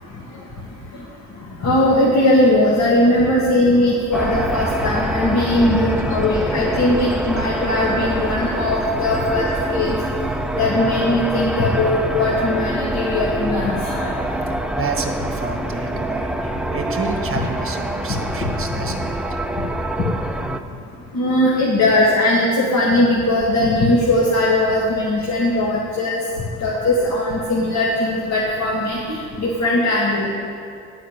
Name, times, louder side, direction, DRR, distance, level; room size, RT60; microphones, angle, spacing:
voice 1, 1.6-9.9 10.6-14.1 21.1-26.2 26.6-30.3, left 1 dB, 65° left, -5 dB, 1.7 m, -19 dB
sound 1, 4.1-20.6, right 1 dB, 5° right, 0.5 m, -25 dB
voice 2, 6.1-6.4 14.3-14.4 14.7-19.4 25.2-25.3, right 4 dB, 45° right, 4 dB, 1.4 m, -30 dB
9.9 x 5.2 x 8.1 m, 2.5 s
cardioid pair, 90°, 30 cm